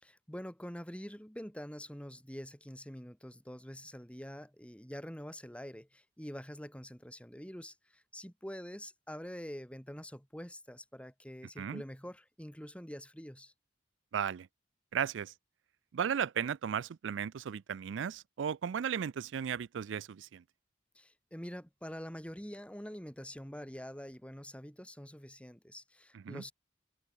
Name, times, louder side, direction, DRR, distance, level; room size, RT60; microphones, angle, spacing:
voice 1, 0.0-13.5 20.9-26.5, equal, 5° left, 6.4 m, -46 dB
voice 2, 14.1-14.5 14.9-15.3 15.9-20.4 26.1-26.4, right 8 dB, 75° right, 0.4 m, -35 dB
head